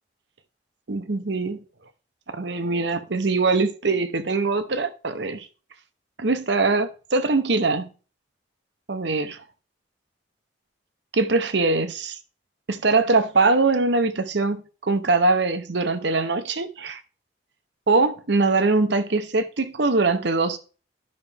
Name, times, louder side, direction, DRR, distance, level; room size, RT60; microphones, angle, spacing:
voice 1, 0.9-1.6 2.3-5.5 6.2-7.9 8.9-9.4 11.1-12.2 12.7-17.0 17.9-20.6, right 3 dB, 65° right, 0.9 m, -22 dB
12.0 x 6.0 x 3.5 m
head